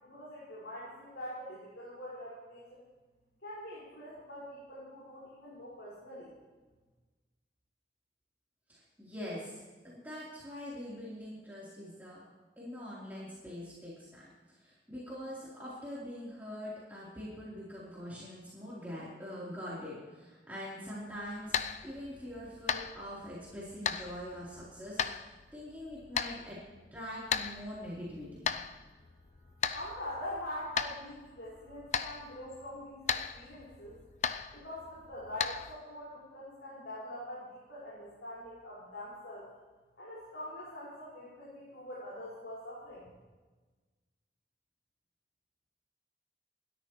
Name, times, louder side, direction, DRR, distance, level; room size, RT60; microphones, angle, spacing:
voice 1, 0.0-2.8 3.4-6.3 29.7-34.0 34.5-39.4 40.0-43.1, left 1 dB, 85° left, -8 dB, 5.5 m, -44 dB
voice 2, 8.7-12.2 12.6-21.6 21.8-26.6 26.9-28.3, equal, 10° right, -9 dB, 3.7 m, -43 dB
sound 1, 21.1-35.7, left 6 dB, 40° left, 0.5 m, -38 dB
27.0 x 13.0 x 3.2 m, 1.3 s
head